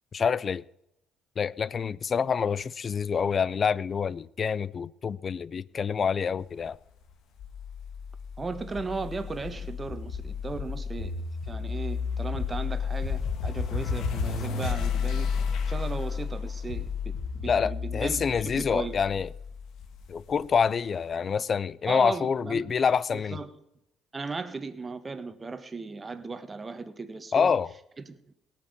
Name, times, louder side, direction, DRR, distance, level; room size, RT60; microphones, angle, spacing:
voice 1, 0.1-0.6 1.4-6.8 17.5-19.3 20.1-23.4 27.3-27.7, left 6 dB, 40° left, 0.5 m, -27 dB
sound 1, 7.4-20.6, left 6 dB, 65° left, 1.9 m, -32 dB
voice 2, 8.4-15.3 15.7-19.0 21.9-22.8 23.1-23.5 24.1-27.5 28.1-28.3, right 4 dB, 25° right, 1.6 m, -36 dB
18.0 x 6.0 x 9.7 m
supercardioid pair, 80°, 0 cm